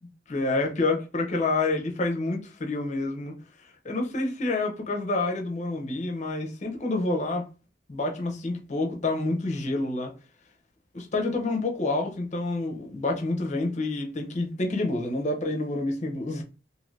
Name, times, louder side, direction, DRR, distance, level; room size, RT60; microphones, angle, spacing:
voice 1, 0.3-3.4 3.8-7.5 7.9-10.1 10.9-16.4, left 2 dB, 40° left, 0.7 m, -28 dB
2.7 x 2.5 x 3.1 m
head